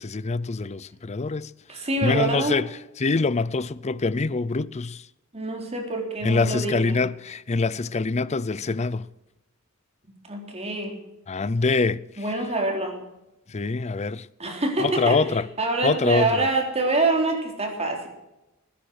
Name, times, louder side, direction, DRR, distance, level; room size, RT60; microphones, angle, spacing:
voice 1, 0.0-1.5 2.0-2.6 3.0-5.0 6.2-9.1 11.3-12.0 13.5-14.3 14.8-15.4 15.8-16.5, left 3 dB, 30° left, 0.5 m, -24 dB
voice 2, 1.7-2.6 5.3-7.0 10.3-11.0 12.2-13.0 14.4-18.1, right 2 dB, 30° right, 3.8 m, -26 dB
20.0 x 10.0 x 6.4 m
head